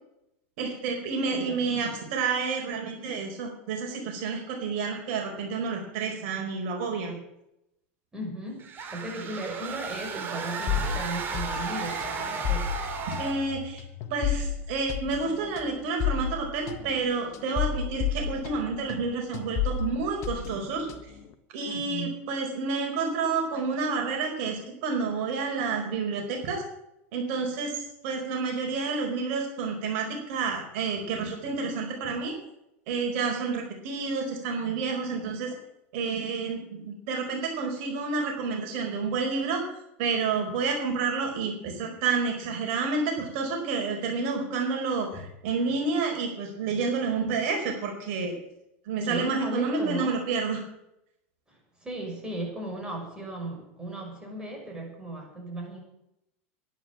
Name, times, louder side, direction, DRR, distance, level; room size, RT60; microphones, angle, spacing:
voice 1, 0.6-7.2 13.2-13.8 14.1-21.1 21.5-26.6 27.1-32.3 32.9-35.5 35.9-39.6 40.0-48.3 48.9-50.6, right 4 dB, 60° right, 2 dB, 4.6 m, -29 dB
voice 2, 1.3-2.0 8.1-12.7 21.6-22.2 49.0-50.2 51.5-55.8, right 1 dB, 10° right, -1 dB, 6.5 m, -36 dB
sound 1, 8.6-13.5, right 5 dB, 30° right, 2.9 m, -34 dB
sound 2, 10.7-19.1 19.3-21.3, left 7 dB, 45° left, 1.5 m, -32 dB
11.5 x 11.0 x 8.9 m, 0.83 s
supercardioid pair, 130°, 7 cm